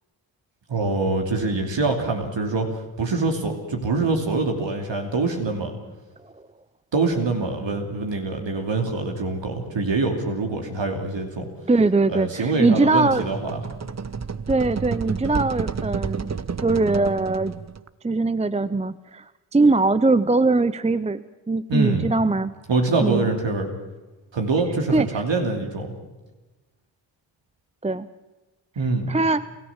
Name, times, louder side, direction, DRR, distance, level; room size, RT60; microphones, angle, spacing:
voice 1, 0.7-5.7 6.9-11.5 12.1-13.6 21.7-22.1 22.7-23.7 24.3-25.9 28.8-29.1, right 3 dB, 65° right, 3 dB, 3.0 m, -24 dB
voice 2, 11.7-13.3 14.5-16.3 16.6-17.5 18.0-19.2 19.5-22.5 23.0-23.3 24.9-25.2 27.8-28.1 29.1-29.4, right 3 dB, 15° right, 15 dB, 0.6 m, -21 dB
Shaking Plastic Object, 13.0-17.9, right 6 dB, 35° right, 1.0 m, -30 dB
27.5 x 14.0 x 7.3 m, 1.2 s
supercardioid pair, 45°, 48 cm